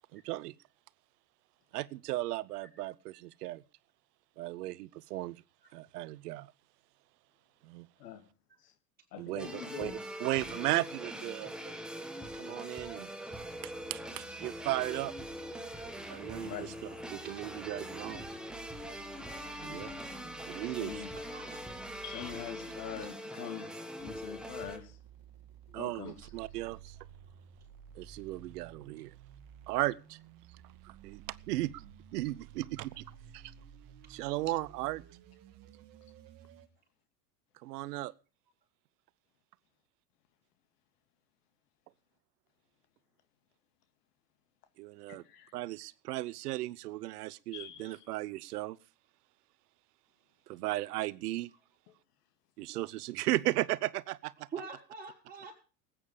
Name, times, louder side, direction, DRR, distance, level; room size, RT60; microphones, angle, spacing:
voice 1, 0.1-0.5 1.7-3.6 4.4-5.4 5.7-6.5 7.6-7.9 9.2-9.9 10.2-12.0 12.3-13.1 13.6-15.1 16.1-18.2 19.6-19.9 20.4-21.0 25.7-27.0 28.0-29.1 29.7-30.2 30.8-31.8 32.1-33.0 33.3-33.5 34.1-35.0 37.6-38.1 44.8-45.2 45.5-48.8 50.5-51.5 52.6-54.5, right 17 dB, 70° right, 0.7 m, -36 dB
voice 2, 9.1-9.9 10.5-10.6 16.4-16.8 19.7-19.9 20.8-21.1 22.0-23.7 24.0-25.0 25.7-26.1 45.1-45.5 47.5-48.0, left 10 dB, 70° left, 2.1 m, -44 dB
sound 1, 9.4-24.8, equal, ahead, 1.6 m, -42 dB
sound 2, 13.3-18.4, right 3 dB, 40° left, 2.9 m, -57 dB
voice 3, 17.1-17.6 21.2-21.6 24.5-24.6 34.1-34.2 54.5-55.5, right 5 dB, 20° right, 5.1 m, -45 dB
sound 3, 18.5-23.1 24.0-36.7, right 9 dB, 45° right, 1.8 m, -54 dB
19.0 x 8.7 x 5.1 m
hypercardioid pair, 90°, 49 cm